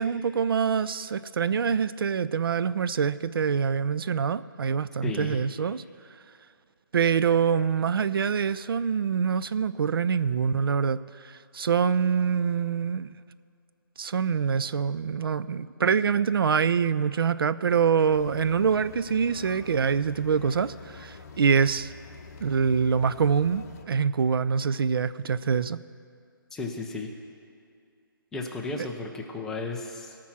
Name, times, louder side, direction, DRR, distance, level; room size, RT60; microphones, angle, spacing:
voice 1, 0.0-5.8 6.9-13.1 14.0-21.9 22.4-25.8, right 6 dB, 85° right, 16 dB, 0.4 m, -25 dB
voice 2, 5.0-5.4 26.5-27.1 28.3-30.2, left 3 dB, 5° left, 1 dB, 0.4 m, -34 dB
sound 1, 18.1-23.8, left 4 dB, 45° left, 1.0 m, -46 dB
17.0 x 6.0 x 7.3 m, 2.4 s
hypercardioid pair, 165°, 12 cm